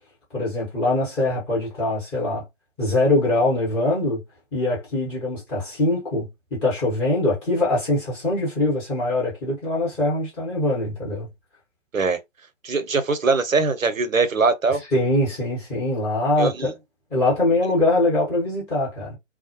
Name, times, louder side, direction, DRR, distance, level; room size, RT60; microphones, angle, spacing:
voice 1, 0.3-2.4 2.8-4.2 4.5-11.3 14.9-16.7 17.1-19.2, left 2 dB, 10° left, 0.8 m, -23 dB
voice 2, 12.6-14.8 16.4-16.7, right 4 dB, 90° right, 0.7 m, -21 dB
2.3 x 2.0 x 2.8 m
figure-of-eight pair, 140°, 39 cm